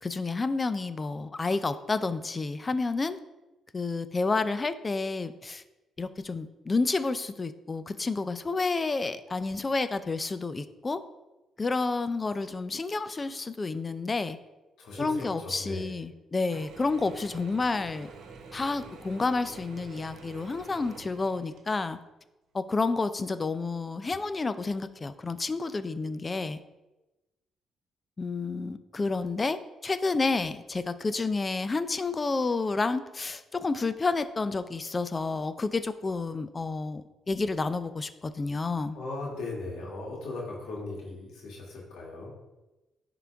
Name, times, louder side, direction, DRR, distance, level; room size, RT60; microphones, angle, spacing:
voice 1, 0.0-3.2 3.7-5.6 6.0-11.0 11.6-14.4 15.0-18.1 18.5-22.0 22.5-26.6 28.2-39.0, left 3 dB, 30° left, 12 dB, 0.4 m, -30 dB
voice 2, 14.8-15.9 38.9-42.3, left 2 dB, 90° left, -4 dB, 2.1 m, -38 dB
Mechanisms / Drill, 16.5-22.0, right 4 dB, 80° right, 1.1 m, -47 dB
10.5 x 3.9 x 3.5 m, 1.0 s
cardioid pair, 90°, 0 cm